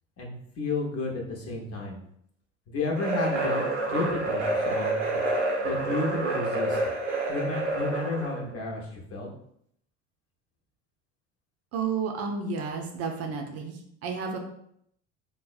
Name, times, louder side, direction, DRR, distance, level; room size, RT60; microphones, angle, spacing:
voice 1, 0.2-2.0 2.7-5.2 5.6-6.8 7.3-9.3, left 3 dB, 45° left, -1 dB, 0.9 m, -32 dB
sound 1, 3.0-8.4, right 2 dB, 85° right, 0.7 m, -28 dB
voice 2, 11.7-14.4, right 5 dB, 45° right, 2 dB, 0.6 m, -31 dB
3.4 x 2.1 x 2.4 m, 0.70 s
hypercardioid pair, 70°, 35 cm